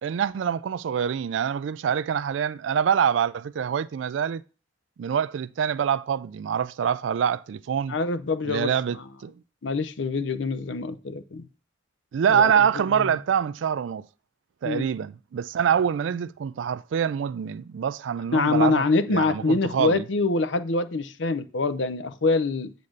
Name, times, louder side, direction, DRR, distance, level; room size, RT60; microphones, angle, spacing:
voice 1, 0.0-4.4 5.0-8.0 8.5-9.3 12.1-14.0 14.6-20.0, right 8 dB, 80° right, 0.3 m, -25 dB
voice 2, 7.9-8.7 9.6-11.5 12.3-12.7 12.9-13.1 14.6-14.9 18.3-22.7, left 3 dB, 75° left, 0.7 m, -25 dB
8.4 x 4.1 x 6.4 m
head